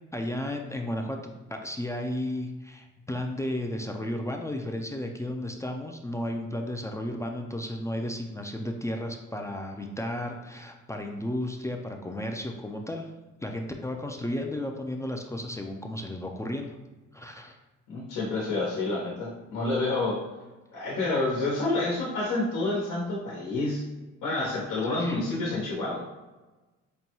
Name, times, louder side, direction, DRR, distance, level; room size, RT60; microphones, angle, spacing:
voice 1, 0.1-13.1 13.4-16.8 17.1-17.6 25.0-25.5, left 1 dB, 10° left, 2 dB, 0.3 m, -33 dB
voice 2, 17.9-20.2 20.7-23.8 24.2-26.0, left 2 dB, 90° left, -5 dB, 1.0 m, -28 dB
5.4 x 2.2 x 2.9 m, 1.2 s
cardioid pair, 90°, 30 cm